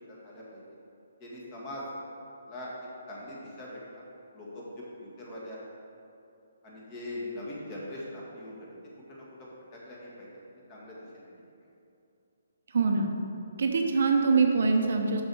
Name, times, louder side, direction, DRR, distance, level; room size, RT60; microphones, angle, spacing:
voice 1, 0.1-0.6 1.2-1.8 2.5-2.7 3.1-4.0 4.3-5.6 6.6-8.7 9.1-10.3 10.7-11.3, left 1 dB, 25° left, -5 dB, 1.8 m, -42 dB
voice 2, 12.7-13.1 13.6-15.2, right 4 dB, 65° right, 3 dB, 0.8 m, -24 dB
6.3 x 6.2 x 4.8 m, 2.7 s
hypercardioid pair, 150°, 0 cm